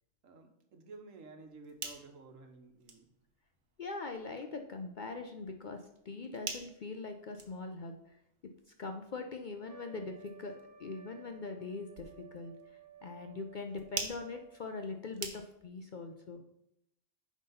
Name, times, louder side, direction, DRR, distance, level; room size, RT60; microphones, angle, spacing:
voice 1, 0.2-3.1, right 3 dB, 80° right, 5 dB, 1.4 m, -53 dB
sound 1, 1.4-15.8, right 5 dB, 65° right, 1.3 m, -49 dB
voice 2, 3.8-8.0 8.8-12.5 13.0-16.4, left 3 dB, 55° left, 5 dB, 0.6 m, -42 dB
Trumpet, 9.7-14.7, right 7 dB, 45° right, 1.5 m, -56 dB
9.3 x 3.7 x 5.5 m, 0.80 s
omnidirectional pair, 1.3 m